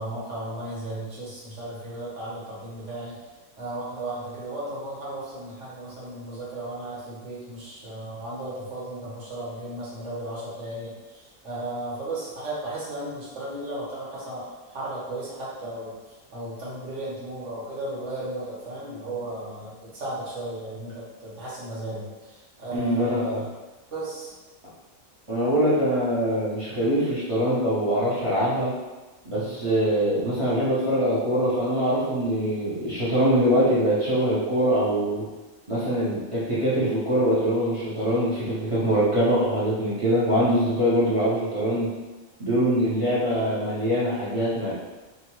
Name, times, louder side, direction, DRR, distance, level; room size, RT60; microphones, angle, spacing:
voice 1, 0.0-3.2 3.6-23.5 23.9-24.3 29.3-29.5, right 1 dB, 65° right, -7 dB, 1.3 m, -35 dB
voice 2, 22.7-23.4 25.3-28.7 29.2-35.3 35.7-41.9 42.4-44.7, equal, 30° right, -10 dB, 0.6 m, -23 dB
2.8 x 2.2 x 2.9 m, 1.2 s
omnidirectional pair, 1.4 m